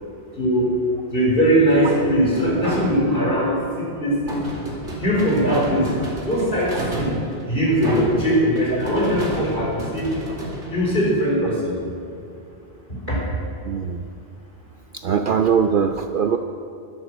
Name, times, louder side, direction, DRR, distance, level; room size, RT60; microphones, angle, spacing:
voice 1, 0.4-0.7 1.1-4.4 5.0-5.9 6.2-7.1 7.5-10.1 10.7-11.8 13.1-13.2, equal, 50° left, -4 dB, 4.4 m, -20 dB
sound 1, 1.7-3.2 4.3-11.4, right 1 dB, 80° right, 2.7 m, -30 dB
voice 2, 13.7-14.0 14.9-16.4, right 7 dB, 55° right, 7 dB, 0.6 m, -21 dB
12.5 x 12.0 x 6.2 m, 2.5 s
omnidirectional pair, 1.2 m